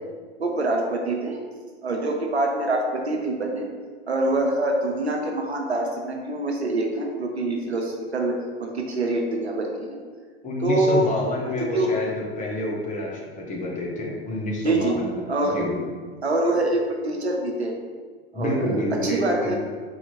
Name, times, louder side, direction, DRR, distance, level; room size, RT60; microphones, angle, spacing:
voice 1, 0.4-1.4 1.8-3.7 4.1-10.0 10.6-11.1 11.4-12.0 14.6-15.0 15.3-15.6 16.2-17.8 18.3-19.5, right 2 dB, 85° right, 1 dB, 0.7 m, -25 dB
voice 2, 10.4-15.8 18.3-19.5, left 1 dB, 25° left, -2 dB, 1.0 m, -28 dB
4.0 x 2.8 x 4.2 m, 1.5 s
figure-of-eight pair, 85°, 31 cm